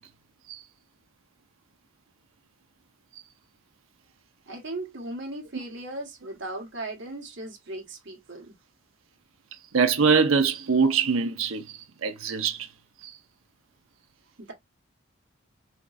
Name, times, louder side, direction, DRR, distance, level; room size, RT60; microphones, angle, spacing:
voice 1, 4.5-8.5 14.4-14.5, right 2 dB, 60° right, 1.5 m, -37 dB
voice 2, 9.7-12.7 13.0-13.1, right 5 dB, 80° right, 0.6 m, -23 dB
4.2 x 3.0 x 2.4 m
head